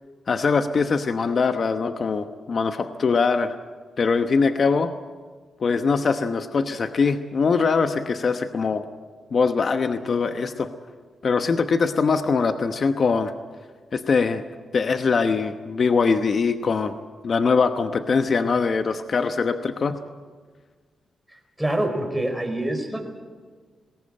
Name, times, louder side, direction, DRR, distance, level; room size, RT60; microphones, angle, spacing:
voice 1, 0.3-3.5 4.0-4.9 5.6-8.8 9.3-10.7 11.2-13.3 13.9-14.4 14.7-16.9 17.2-20.0, left 5 dB, 50° left, 8 dB, 1.0 m, -22 dB
voice 2, 21.3-23.1, right 1 dB, 5° right, 3 dB, 4.6 m, -26 dB
20.0 x 18.0 x 8.8 m, 1.5 s
cardioid pair, 85°, 0 cm